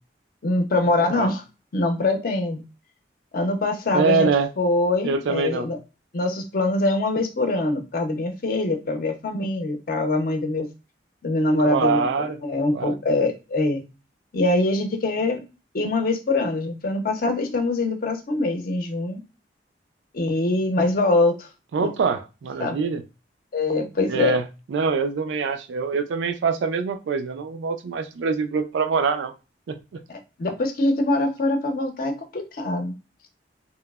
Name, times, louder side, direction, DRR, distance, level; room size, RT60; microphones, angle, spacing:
voice 1, 0.4-1.4 1.7-2.6 3.3-4.3 4.6-5.8 6.1-10.7 11.2-13.8 14.3-15.4 15.7-19.2 20.1-21.5 21.8-21.9 22.6-22.9 23.5-24.3 30.4-32.9, left 2 dB, 55° left, 5 dB, 0.5 m, -23 dB
voice 2, 3.9-4.5 5.0-5.7 11.6-12.4 12.7-13.0 21.7-23.0 24.1-29.3 29.7-30.0, right 4 dB, 90° right, 9 dB, 0.3 m, -24 dB
2.9 x 2.0 x 2.2 m, 0.29 s
head